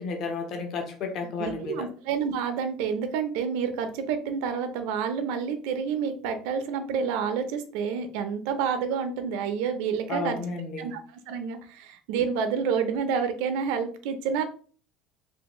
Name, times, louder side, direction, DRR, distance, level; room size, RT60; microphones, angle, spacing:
voice 1, 0.0-1.9 10.1-10.9, left 4 dB, 40° left, 4 dB, 0.6 m, -32 dB
voice 2, 1.4-10.4 10.8-11.0 11.3-14.4, right 6 dB, 75° right, 8 dB, 0.6 m, -29 dB
3.5 x 2.5 x 3.0 m, 0.41 s
cardioid pair, 170°, 0 cm